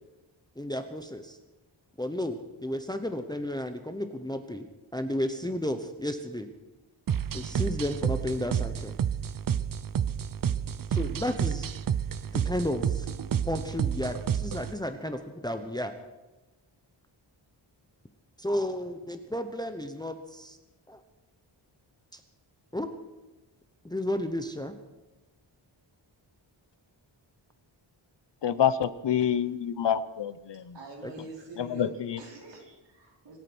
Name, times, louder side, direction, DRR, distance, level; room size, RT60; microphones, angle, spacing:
voice 1, 0.6-1.4 2.0-4.7 4.9-6.5 7.3-8.9 10.9-11.7 12.3-13.1 13.5-15.9 18.4-20.6 20.9-21.0 22.1-22.2 22.7-22.9 23.8-24.7 31.0-31.1, left 1 dB, 10° left, 7 dB, 0.9 m, -32 dB
sound 1, 7.1-14.7, right 8 dB, 45° right, 0.6 m, -30 dB
voice 2, 28.4-30.7 31.6-32.2, left 9 dB, 60° left, 15 dB, 0.8 m, -27 dB
voice 3, 30.7-33.4, right 2 dB, 60° right, 0 dB, 4.3 m, -45 dB
25.5 x 8.7 x 6.2 m, 1.1 s
wide cardioid pair, 165°, 48 cm